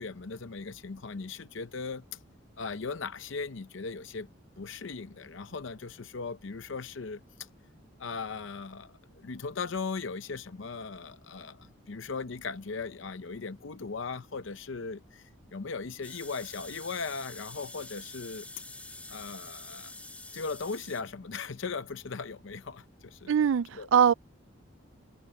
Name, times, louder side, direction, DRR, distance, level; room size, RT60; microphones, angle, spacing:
voice 1, 0.0-2.0 2.6-4.3 4.6-7.5 8.0-8.9 9.2-18.5 19.1-19.9 20.3-23.3 23.7-23.9, left 4 dB, 65° left, 0.6 m, -38 dB
sound 1, 16.0-21.0, left 2 dB, 5° left, 2.1 m, -46 dB
voice 2, 23.3-24.1, right 8 dB, 70° right, 0.3 m, -22 dB
head